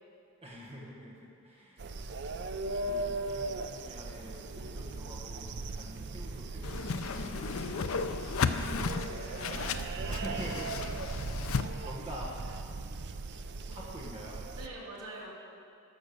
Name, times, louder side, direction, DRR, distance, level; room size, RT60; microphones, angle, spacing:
voice 1, 0.4-2.1 2.6-8.3 9.5-9.6 10.1-12.4 13.7-14.5, equal, 25° right, -4 dB, 1.1 m, -46 dB
sound 1, 1.8-14.7, right 2 dB, 50° right, 0.5 m, -38 dB
Whoosh swoosh swish, 6.6-11.6, left 5 dB, 65° left, 0.5 m, -34 dB
voice 2, 8.4-9.8 14.5-15.3, right 1 dB, 80° right, -4 dB, 2.5 m, -45 dB
11.0 x 6.4 x 6.8 m, 2.5 s
head